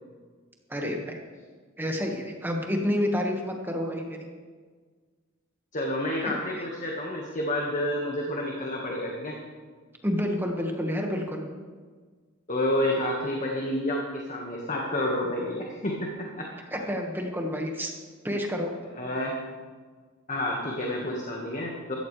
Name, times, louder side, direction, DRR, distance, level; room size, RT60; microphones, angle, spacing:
voice 1, 0.7-1.2 1.8-4.2 6.5-6.6 10.0-11.4 16.7-17.9 18.2-18.7, equal, 10° right, 1 dB, 1.6 m, -29 dB
voice 2, 5.7-9.3 12.5-16.5 19.0-19.3 20.3-22.0, left 1 dB, 40° left, -1 dB, 1.6 m, -29 dB
15.5 x 14.0 x 3.3 m, 1.5 s
head